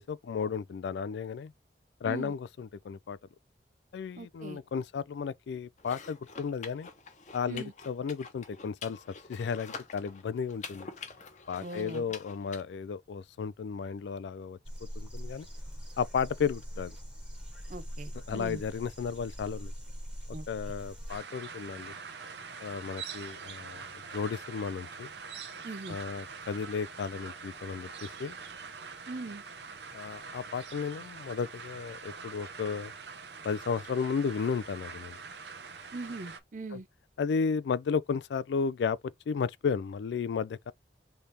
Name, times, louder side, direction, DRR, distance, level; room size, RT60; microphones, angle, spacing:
voice 1, 0.0-1.5 2.0-3.2 3.9-6.9 7.3-9.0 9.3-10.9 11.5-14.6 15.0-15.5 16.0-17.0 18.3-19.7 20.5-21.9 22.6-25.1 25.9-27.9 28.2-28.4 29.9-32.9 33.4-35.2 36.7-36.8 37.2-40.7, left 6 dB, 75° left, 0.3 m, -33 dB
voice 2, 4.1-4.6 7.5-7.7 11.6-12.1 17.7-18.6 20.3-20.5 25.6-26.0 29.1-29.4 35.9-36.9, right 2 dB, 45° right, 0.5 m, -40 dB
sound 1, 5.8-12.6, left 5 dB, 45° left, 0.8 m, -47 dB
sound 2, 14.6-21.2, equal, 5° right, 1.2 m, -42 dB
sound 3, 21.1-36.4, right 5 dB, 75° right, 0.8 m, -44 dB
3.3 x 3.3 x 4.1 m
head